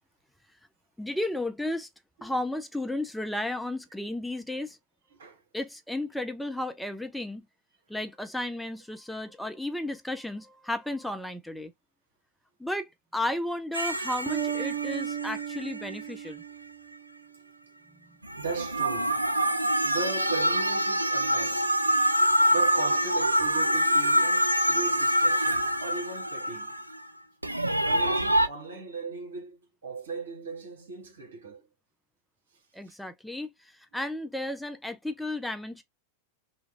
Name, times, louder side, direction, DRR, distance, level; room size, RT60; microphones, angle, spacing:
voice 1, 1.0-1.9 2.2-4.8 5.5-7.4 7.9-11.7 12.6-16.4 32.7-35.8, left 1 dB, 5° left, 0.4 m, -33 dB
voice 2, 5.1-5.4 18.4-21.7 22.5-26.7 27.8-31.7 32.8-32.9, right 4 dB, 65° right, 1.1 m, -38 dB
sound 1, 13.7-16.0 18.2-27.0 27.4-28.5, equal, 85° right, 0.3 m, -25 dB
Bass guitar, 14.3-17.3, right 11 dB, 20° right, 0.9 m, -35 dB
3.0 x 2.3 x 3.5 m
figure-of-eight pair, 90°, 0 cm